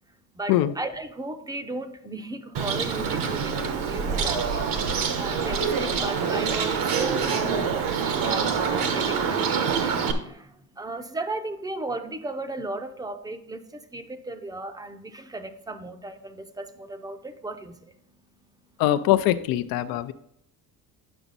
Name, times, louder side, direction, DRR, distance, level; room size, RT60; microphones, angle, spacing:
voice 1, 0.0-18.8 19.8-20.1, right 2 dB, 10° right, 8 dB, 0.5 m, -36 dB
Bird, 2.5-10.1, right 6 dB, 70° right, 1.1 m, -26 dB
voice 2, 18.8-20.1, left 13 dB, 80° left, 11 dB, 0.6 m, -22 dB
9.1 x 6.0 x 4.0 m, 0.70 s
cardioid pair, 145°, 35 cm